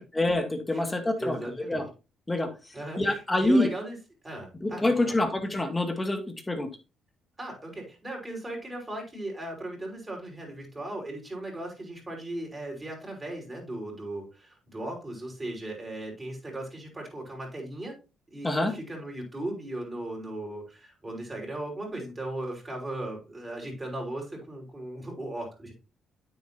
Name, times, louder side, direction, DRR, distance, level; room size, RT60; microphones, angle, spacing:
voice 1, 0.1-1.4 1.7-1.8 2.3-2.5 3.0-3.7 4.6-6.2 6.5-6.7 18.4-18.7, left 1 dB, 15° left, 6 dB, 2.2 m, -26 dB
voice 2, 1.2-1.8 2.7-4.0 4.2-5.1 7.4-17.9 18.3-25.7, right 1 dB, 20° right, -1 dB, 5.5 m, -37 dB
9.3 x 8.0 x 2.9 m, 0.31 s
cardioid pair, 90°, 0 cm